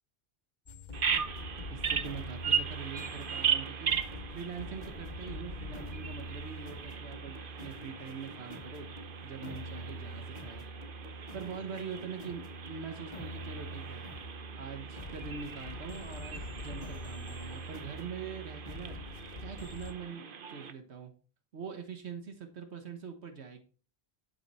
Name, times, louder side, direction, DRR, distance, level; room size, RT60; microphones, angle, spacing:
sound 1, 0.7-19.9, equal, 45° left, 1.5 m, -44 dB
Bird vocalization bird call bird song, 0.9-20.7, right 7 dB, 55° right, 1.0 m, -38 dB
voice 1, 1.7-4.0 4.3-8.9 9.2-10.6 11.3-14.0 14.5-19.0 19.4-21.1 21.5-23.6, right 6 dB, 85° right, 6 dB, 1.5 m, -43 dB
11.5 x 7.1 x 4.3 m, 0.38 s
omnidirectional pair, 1.1 m